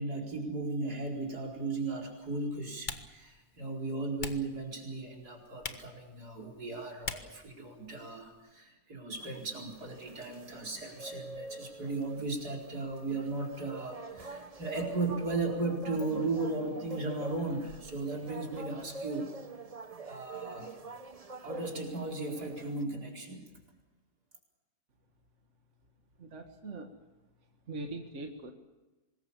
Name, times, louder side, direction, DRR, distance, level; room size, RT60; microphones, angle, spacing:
voice 1, 0.0-19.3 20.1-20.8 21.4-23.5, right 3 dB, 75° right, 0 dB, 5.1 m, -36 dB
Typing, 1.0-8.5, left 3 dB, 30° left, 1.5 m, -47 dB
sound 1, 9.1-22.8, right 3 dB, 30° right, 0.9 m, -46 dB
voice 2, 26.2-26.9 27.7-28.5, right 2 dB, 50° right, 3 dB, 2.1 m, -41 dB
25.0 x 21.0 x 7.3 m, 1.1 s
omnidirectional pair, 1.7 m